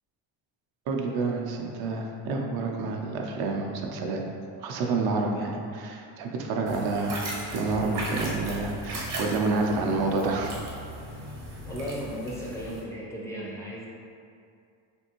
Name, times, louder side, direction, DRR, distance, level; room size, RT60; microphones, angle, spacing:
voice 1, 0.9-4.2 4.6-10.6, right 3 dB, 55° right, 1 dB, 0.5 m, -29 dB
sound 1, 6.7-12.8, right 1 dB, 35° right, 0.8 m, -38 dB
sound 2, 7.5-12.9, equal, 85° left, 0.7 m, -42 dB
voice 2, 11.7-13.9, equal, 5° left, -6 dB, 0.3 m, -35 dB
3.4 x 2.5 x 2.8 m, 2.4 s
cardioid pair, 135°, 44 cm